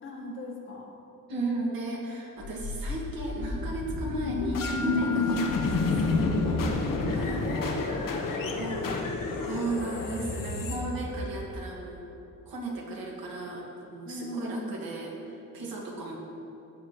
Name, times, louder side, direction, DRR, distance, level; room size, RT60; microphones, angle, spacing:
voice 1, 0.0-1.0 6.7-6.9 7.3-8.5 8.8-9.1 14.0-14.8, left 1 dB, 35° left, -2 dB, 1.7 m, -39 dB
voice 2, 1.3-6.6 7.1-7.6 8.6-12.0 12.5-16.1, right 2 dB, 80° right, -2 dB, 2.1 m, -35 dB
sound 1, 2.4-11.5, left 3 dB, 65° left, 1.1 m, -29 dB
Mallet percussion, 4.6-7.2, left 4 dB, 5° left, 0.3 m, -40 dB
16.5 x 7.9 x 3.1 m, 2.8 s
wide cardioid pair, 165°, 35 cm